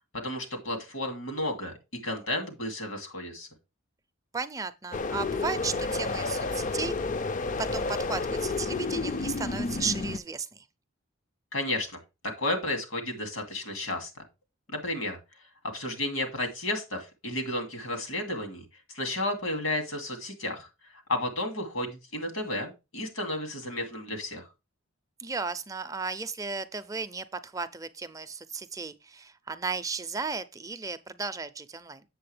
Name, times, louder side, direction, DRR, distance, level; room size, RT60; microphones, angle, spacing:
voice 1, 0.2-1.8 2.0-3.5 11.5-11.9 12.2-14.1 14.7-15.2 15.7-18.7 18.9-20.7 21.1-24.4, left 1 dB, 85° left, 2.5 m, -32 dB
voice 2, 4.3-6.9 7.6-10.6 25.2-32.0, right 4 dB, 15° right, 0.4 m, -35 dB
sound 1, 4.9-10.2, left 3 dB, 40° left, 0.4 m, -30 dB
7.8 x 7.2 x 3.3 m
head